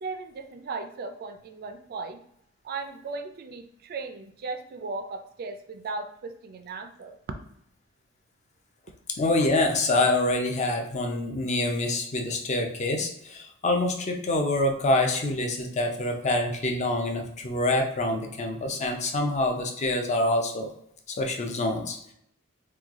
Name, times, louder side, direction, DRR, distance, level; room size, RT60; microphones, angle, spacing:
voice 1, 0.0-2.2 2.6-7.4, right 3 dB, 45° right, 8 dB, 0.4 m, -37 dB
voice 2, 9.2-20.7 21.1-22.1, left 2 dB, 35° left, 3 dB, 0.5 m, -26 dB
3.1 x 2.2 x 3.5 m, 0.71 s
head